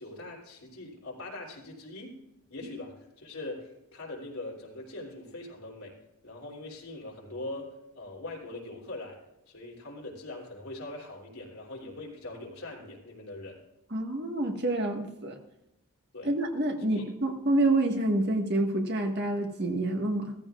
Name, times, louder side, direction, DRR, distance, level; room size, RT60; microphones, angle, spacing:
voice 1, 0.0-2.2 2.5-6.0 6.2-9.2 9.5-13.6 16.1-16.3 16.9-17.0, left 2 dB, 80° left, -2 dB, 3.2 m, -42 dB
voice 2, 13.9-15.3 16.2-20.3, right 1 dB, 50° right, 3 dB, 1.6 m, -27 dB
15.5 x 14.0 x 2.5 m, 0.91 s
head